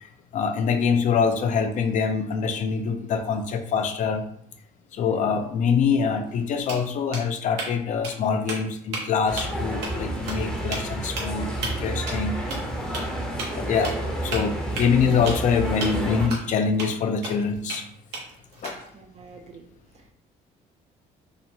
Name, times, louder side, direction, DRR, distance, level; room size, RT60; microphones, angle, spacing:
voice 1, 0.0-4.2 4.9-12.4 13.5-14.0 14.2-17.9 18.6-18.7, left 6 dB, 50° left, 6 dB, 0.4 m, -24 dB
sound 1, 6.3-6.4 6.7-7.7 8.0-8.2 8.5-9.0 9.4-9.6 9.8-9.9 10.3-10.4 10.7-10.8 11.2-11.3 11.6-11.7 12.1-12.2 12.5-12.6 12.9-13.0 13.4-13.5 13.8-14.0 14.3-15.4 15.8-15.9 16.3-16.4 16.8-16.9 17.2-17.8 18.1-18.9, right 3 dB, 85° right, 0.9 m, -32 dB
Ambience interior museum cafe, 9.3-16.3, right 1 dB, 5° left, 0.6 m, -30 dB
voice 2, 18.9-20.1, right 4 dB, 40° right, 5 dB, 0.4 m, -49 dB
2.8 x 2.1 x 2.7 m, 0.66 s
cardioid pair, 110°, 17 cm